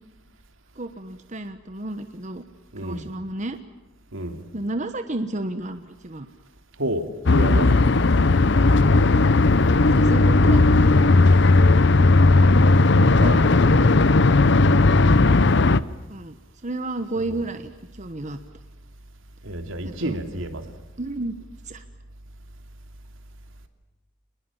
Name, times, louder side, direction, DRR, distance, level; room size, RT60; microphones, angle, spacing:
voice 1, 0.7-2.4 2.8-3.6 4.5-6.3 9.9-10.7 16.1-16.4 16.6-18.4 19.8-20.1 21.0-21.4 21.6-21.8, right 2 dB, 35° right, 9 dB, 1.2 m, -31 dB
voice 2, 2.7-3.1 4.1-4.4 6.8-7.8 13.2-13.9 17.3-17.4 19.4-20.7, right 1 dB, 80° right, 7 dB, 2.9 m, -30 dB
sound 1, 7.3-15.8, left 3 dB, 60° left, 0.8 m, -16 dB
28.5 x 21.0 x 7.3 m, 1.1 s
head